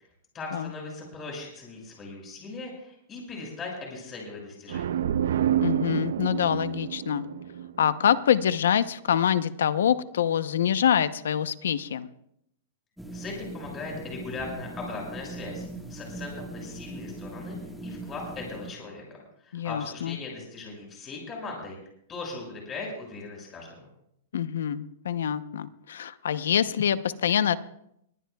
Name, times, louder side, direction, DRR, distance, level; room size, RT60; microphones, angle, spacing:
voice 1, 0.3-4.9 13.1-17.6 17.8-19.0 19.4-21.8 22.1-23.9, left 3 dB, 20° left, -1 dB, 6.5 m, -39 dB
sound 1, 4.7-8.4, right 10 dB, 75° right, 0.5 m, -28 dB
voice 2, 5.6-7.3 7.8-12.1 19.5-20.2 24.3-27.6, left 9 dB, 85° left, 14 dB, 0.8 m, -25 dB
sound 2, 13.0-18.8, right 2 dB, ahead, 1.6 m, -40 dB
22.0 x 18.0 x 2.3 m, 0.74 s
hypercardioid pair, 155°, 0 cm